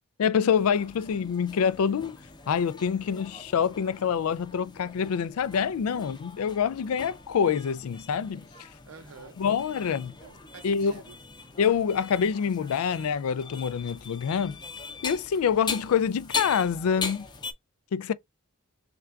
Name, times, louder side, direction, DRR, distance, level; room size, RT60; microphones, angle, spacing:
voice 1, 0.2-2.2 2.5-8.7 9.4-10.1 10.6-10.9 11.6-14.6 15.0-17.3 17.9-18.1, left 7 dB, 85° left, 0.4 m, -26 dB
sound 1, 0.5-17.5, left 4 dB, 20° left, 0.6 m, -41 dB
voice 2, 8.8-9.4 10.2-11.2, right 5 dB, 85° right, 0.7 m, -48 dB
3.4 x 2.5 x 4.4 m
head